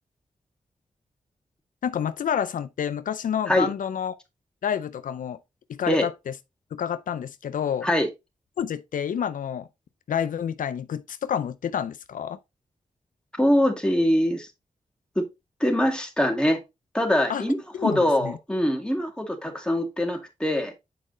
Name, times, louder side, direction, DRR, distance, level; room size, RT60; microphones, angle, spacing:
voice 1, 1.8-4.1 4.6-5.4 5.7-6.3 6.7-7.9 8.6-9.7 10.1-12.4 17.3-17.4 17.8-18.4, left 8 dB, 85° left, 0.5 m, -28 dB
voice 2, 13.4-14.5 15.2-15.3 15.6-16.6 16.9-20.7, equal, 5° left, 2.1 m, -23 dB
8.7 x 4.9 x 3.1 m
wide cardioid pair, 90°, 13 cm